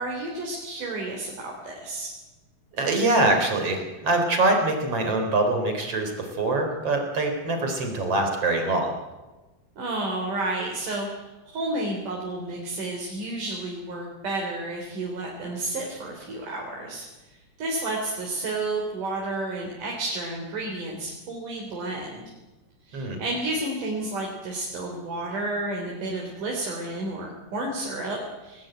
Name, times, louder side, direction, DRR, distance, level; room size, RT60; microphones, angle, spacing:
voice 1, 0.0-2.1 9.8-17.1 17.6-22.3 22.9-28.7, right 2 dB, 85° right, -1 dB, 5.2 m, -31 dB
voice 2, 2.7-8.9 22.9-23.2, right 2 dB, 50° right, 4 dB, 5.0 m, -24 dB
29.5 x 20.5 x 9.1 m, 1.2 s
omnidirectional pair, 3.6 m